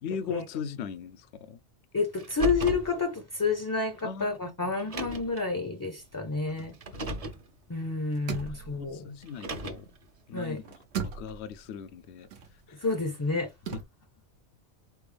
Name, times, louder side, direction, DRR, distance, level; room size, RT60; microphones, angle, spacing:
voice 1, 0.0-1.6 4.0-4.7 6.9-7.2 8.5-9.9 10.3-10.6 11.0-12.3 12.7-12.8 13.7-13.8, left 7 dB, 75° left, 0.8 m, -39 dB
voice 2, 1.9-6.7 7.7-9.0 10.3-10.6 12.8-13.5, left 4 dB, 20° left, 0.6 m, -29 dB
Car, 2.2-2.9 4.0-4.1 4.8-5.4 6.7-7.4 9.2-10.0, right 1 dB, 40° right, 0.7 m, -35 dB
sound 1, 6.0-7.6 7.9-10.2 10.5-13.8, right 6 dB, 70° right, 1.0 m, -40 dB
4.2 x 3.4 x 3.3 m
omnidirectional pair, 1.2 m